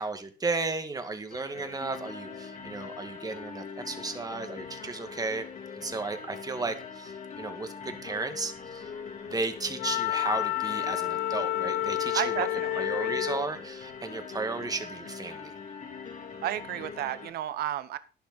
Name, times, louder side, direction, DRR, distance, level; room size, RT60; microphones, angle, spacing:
voice 1, 0.0-5.4 5.8-8.9 9.3-12.5 12.8-15.6, right 3 dB, 20° right, 7 dB, 2.1 m, -34 dB
sound 1, 1.3-17.3, left 5 dB, 50° left, 3.3 m, -42 dB
Wind instrument woodwind instrument, 9.8-13.5, left 14 dB, 65° left, 0.5 m, -29 dB
voice 2, 12.1-13.1 16.4-18.0, right 12 dB, 70° right, 14 dB, 0.9 m, -32 dB
11.5 x 11.0 x 4.1 m, 0.35 s
cardioid pair, 110°, 17 cm